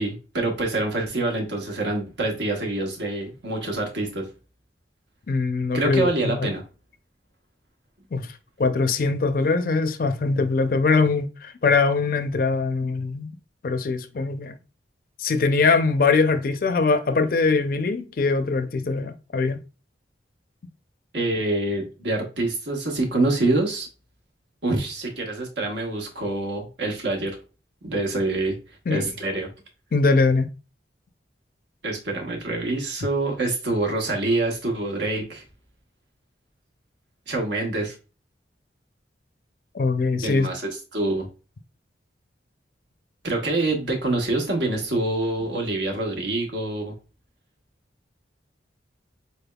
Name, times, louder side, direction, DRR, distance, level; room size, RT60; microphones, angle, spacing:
voice 1, 0.0-4.3 5.7-6.6 21.1-23.9 24.6-27.4 27.8-28.5 28.9-29.5 31.8-35.4 37.3-37.9 40.2-41.3 43.2-46.9, right 2 dB, 80° right, 1.2 m, -26 dB
voice 2, 5.3-6.5 8.1-13.4 13.6-14.6 15.2-19.6 28.9-29.1 29.9-30.5 39.7-40.5, left 4 dB, 50° left, 0.4 m, -22 dB
4.3 x 3.4 x 2.2 m
head